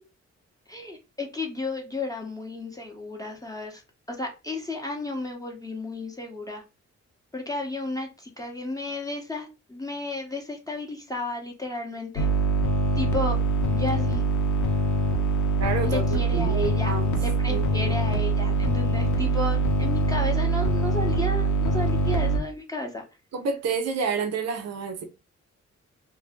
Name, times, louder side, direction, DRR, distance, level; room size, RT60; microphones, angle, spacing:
voice 1, 0.7-3.8 4.1-6.6 7.3-12.3 13.0-13.4 13.7-14.3 15.8-23.0, left 2 dB, 10° left, 0.7 m, -33 dB
sound 1, 12.2-22.4, right 2 dB, 85° left, 0.7 m, -24 dB
voice 2, 15.6-17.1 17.5-18.5 23.3-25.0, right 5 dB, 60° right, 0.7 m, -30 dB
2.6 x 2.1 x 3.4 m
cardioid pair, 95°, 29 cm